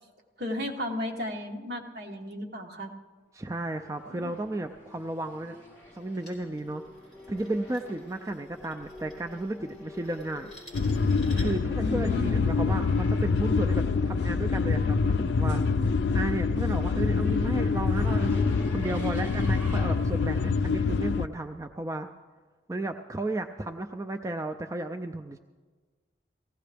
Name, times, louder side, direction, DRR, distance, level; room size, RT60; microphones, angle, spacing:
voice 1, 0.4-2.9 4.1-4.3 11.8-12.3, left 1 dB, 60° right, 2 dB, 1.3 m, -34 dB
voice 2, 3.3-5.6 5.9-6.8 7.3-10.5 11.4-15.6 16.1-22.1 22.7-25.4, right 2 dB, 15° right, 6 dB, 0.3 m, -33 dB
Race car auto racing / Accelerating revving vroom, 3.5-21.7, left 2 dB, 15° left, 2.6 m, -46 dB
sound 1, 5.9-11.7, left 1 dB, ahead, 3.9 m, -52 dB
sound 2, 10.7-21.3, left 4 dB, 75° left, 0.4 m, -26 dB
18.0 x 15.5 x 3.4 m, 1.4 s
head